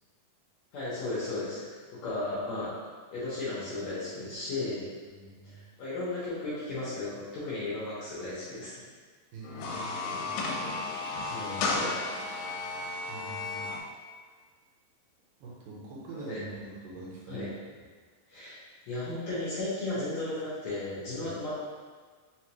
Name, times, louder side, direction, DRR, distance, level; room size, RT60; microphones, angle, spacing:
voice 1, 0.7-1.8 2.0-2.8 3.1-4.9 5.4-8.8 11.3-11.9 16.3-16.4 17.3-17.5 18.3-18.6 18.9-21.6, left 2 dB, 70° left, -10 dB, 1.8 m, -35 dB
voice 2, 5.1-5.6 9.3-10.3 13.1-13.7 15.4-17.5 21.2-21.3, right 2 dB, 75° right, -5 dB, 2.2 m, -44 dB
sound 1, 9.4-13.8, left 3 dB, 85° left, 2.3 m, -33 dB
5.8 x 2.5 x 2.9 m, 1.5 s
omnidirectional pair, 4.1 m